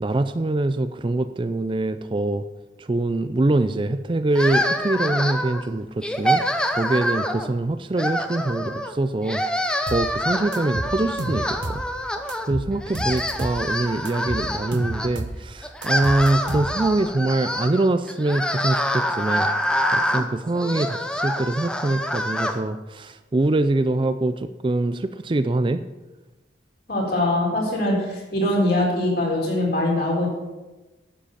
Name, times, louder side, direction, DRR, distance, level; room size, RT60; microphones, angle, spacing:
voice 1, 0.0-2.4 2.8-6.4 6.7-9.4 9.8-11.8 12.5-19.5 19.9-25.8, right 2 dB, 25° right, 11 dB, 0.4 m, -24 dB
sound 1, 4.3-5.6 6.0-7.5 7.9-8.9 9.2-12.5 12.8-15.1 15.6-22.6, equal, 5° left, 0.7 m, -26 dB
sound 2, 9.9-10.1 10.5-11.9 12.3-13.6 14.1-15.4 15.8-17.0, right 1 dB, 65° right, 1.0 m, -31 dB
voice 2, 26.9-30.3, left 1 dB, 55° left, -3 dB, 4.3 m, -22 dB
11.5 x 7.7 x 7.1 m, 1.1 s
head